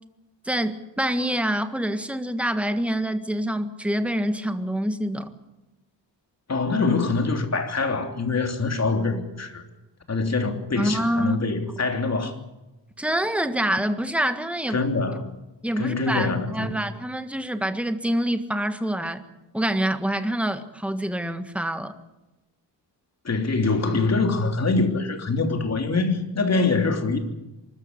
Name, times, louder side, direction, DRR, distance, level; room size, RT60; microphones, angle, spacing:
voice 1, 0.4-5.3 10.8-11.4 13.0-14.8 15.6-19.2 19.5-22.0, equal, 5° right, 1.6 m, -26 dB
voice 2, 6.5-9.6 10.1-12.4 14.7-15.3 15.8-16.8 23.2-27.2, left 3 dB, 35° left, 3.2 m, -24 dB
24.0 x 14.0 x 9.8 m
cardioid pair, 105°, 43 cm